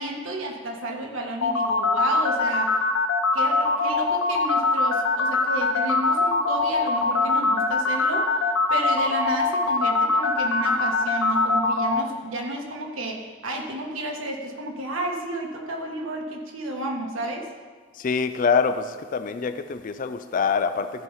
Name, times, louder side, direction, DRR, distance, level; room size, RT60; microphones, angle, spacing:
voice 1, 0.0-2.8 3.3-8.3 8.7-17.5, right 1 dB, 75° right, 1 dB, 1.5 m, -32 dB
sound 1, 1.4-12.0, left 3 dB, 70° left, 0.7 m, -22 dB
voice 2, 18.0-18.9 19.1-20.9, left 5 dB, 40° left, 10 dB, 0.3 m, -24 dB
14.0 x 4.7 x 5.6 m, 1.5 s
head